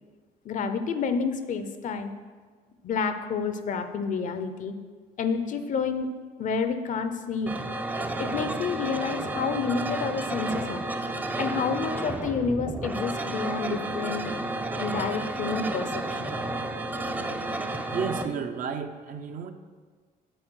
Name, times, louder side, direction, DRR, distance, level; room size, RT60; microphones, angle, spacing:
voice 1, 0.4-2.2 2.8-4.8 5.2-6.1 6.4-7.5 8.2-10.8 11.4-14.4 14.8-16.3, left 5 dB, 50° left, 9 dB, 0.6 m, -29 dB
sound 1, 7.5-18.3, right 2 dB, 10° right, 0.4 m, -31 dB
voice 2, 17.9-19.5, right 6 dB, 55° right, 7 dB, 0.6 m, -32 dB
7.8 x 4.1 x 6.3 m, 1.5 s
cardioid pair, 110°, 17 cm